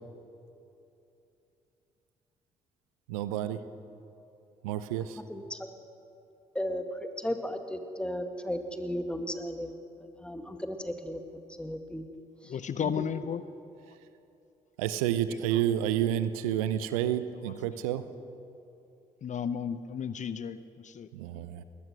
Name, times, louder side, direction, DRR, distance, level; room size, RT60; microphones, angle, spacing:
voice 1, 3.1-3.6 4.6-5.2 14.8-18.0 21.1-21.6, right 11 dB, 75° right, 13 dB, 0.8 m, -30 dB
voice 2, 5.3-5.7 6.5-6.8 7.2-9.7 10.2-11.2 11.6-12.1, equal, 5° left, 6 dB, 2.2 m, -35 dB
voice 3, 12.5-13.4 15.5-15.6 19.2-21.1 21.3-21.4, left 8 dB, 45° left, 14 dB, 0.8 m, -34 dB
21.5 x 20.0 x 6.3 m, 2.8 s
figure-of-eight pair, 45°, 18 cm